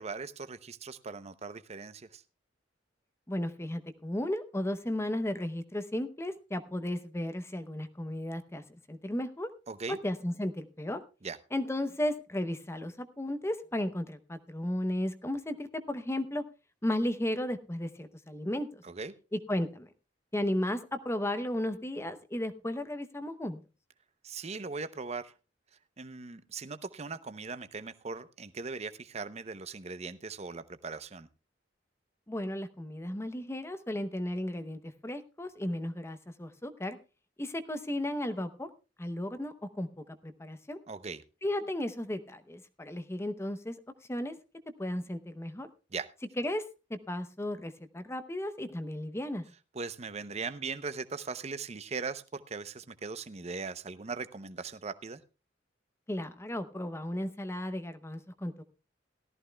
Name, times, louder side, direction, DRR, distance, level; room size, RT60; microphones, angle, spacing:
voice 1, 0.0-2.2 9.7-10.0 11.2-11.4 18.8-19.1 24.2-25.3 26.0-31.3 40.9-41.2 45.9-46.1 49.7-55.2, right 4 dB, 35° right, 13 dB, 0.7 m, -39 dB
voice 2, 3.3-9.5 9.9-11.0 11.5-16.4 16.8-18.8 19.3-19.9 20.3-23.6 32.3-37.0 37.4-38.7 39.0-40.8 41.4-43.8 44.1-44.4 44.8-45.7 46.4-49.4 56.1-58.6, left 1 dB, 15° left, 10 dB, 0.8 m, -34 dB
17.5 x 13.5 x 2.3 m, 0.30 s
head